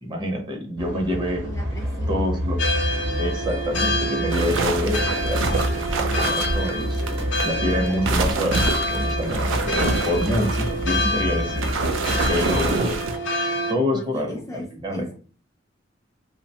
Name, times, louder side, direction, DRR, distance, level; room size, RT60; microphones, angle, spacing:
voice 1, 0.0-1.4 2.1-2.6 3.2-7.0 7.4-8.6 8.9-11.7 12.3-13.0 13.7-15.1, left 1 dB, 25° right, 2 dB, 0.6 m, -27 dB
sound 1, 0.8-12.8, equal, 65° right, 0.8 m, -28 dB
voice 2, 1.4-2.3 13.9-15.1, left 1 dB, 15° left, 1 dB, 0.3 m, -38 dB
sound 2, 2.6-13.7, left 1 dB, 70° left, 0.6 m, -28 dB
sound 3, 4.3-7.5 7.8-13.2, right 4 dB, 85° right, 0.4 m, -27 dB
2.7 x 2.1 x 2.7 m, 0.39 s
head